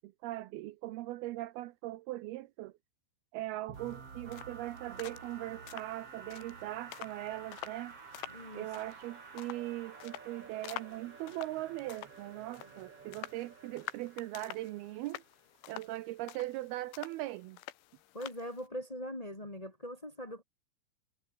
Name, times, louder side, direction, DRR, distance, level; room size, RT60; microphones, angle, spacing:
voice 1, 0.0-2.7 3.3-8.0 8.5-15.2 15.7-17.6, right 16 dB, 85° right, 2.2 m, -40 dB
sound 1, 3.7-15.5, right 5 dB, 35° right, 3.7 m, -51 dB
sound 2, 3.8-18.7, left 16 dB, 85° left, 3.6 m, -49 dB
voice 2, 8.3-8.7 18.1-20.4, equal, 30° left, 0.7 m, -41 dB
omnidirectional pair, 5.4 m